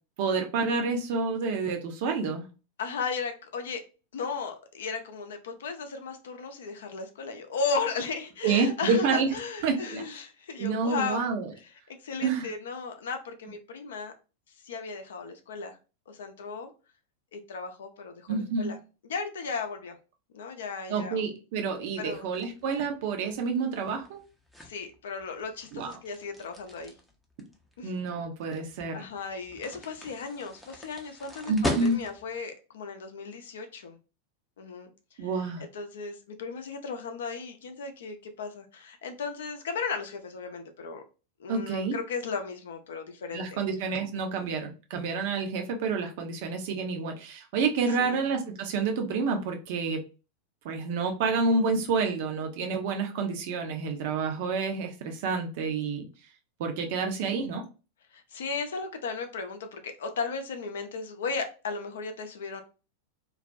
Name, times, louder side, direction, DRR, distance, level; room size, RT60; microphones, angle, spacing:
voice 1, 0.2-2.4 8.4-9.3 9.6-10.0 10.6-11.5 12.2-12.5 18.3-18.7 20.9-24.2 25.7-25.9 27.8-29.0 31.5-32.0 35.2-35.6 41.5-42.0 43.3-50.0 50.6-56.1 56.6-57.6, right 4 dB, 50° right, 4 dB, 0.6 m, -28 dB
voice 2, 2.8-3.8 4.1-11.2 11.6-14.1 14.6-15.8 16.1-16.7 17.3-18.8 19.1-20.0 20.3-21.2 22.0-22.3 24.6-27.0 27.8-27.9 28.9-34.0 34.6-34.9 35.2-35.3 35.7-41.0 41.4-43.6 48.0-48.2 58.1-62.6, left 5 dB, 60° left, 6 dB, 0.4 m, -35 dB
sound 1, 22.0-32.4, left 1 dB, 5° left, 0.5 m, -40 dB
2.3 x 2.1 x 2.5 m, 0.32 s
figure-of-eight pair, 90°, 0 cm